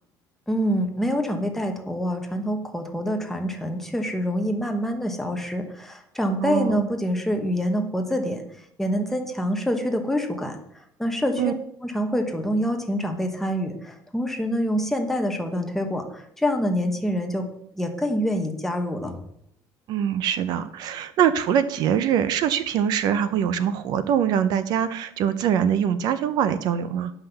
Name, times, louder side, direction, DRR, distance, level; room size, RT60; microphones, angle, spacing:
voice 1, 0.5-8.4 8.8-10.6 11.0-11.6 11.8-17.5 17.7-19.2, equal, 5° left, 4 dB, 1.1 m, -26 dB
voice 2, 6.4-6.9 11.4-11.5 19.9-27.1, right 9 dB, 60° right, 13 dB, 0.6 m, -23 dB
9.7 x 5.7 x 6.9 m, 0.75 s
cardioid pair, 160°, 8 cm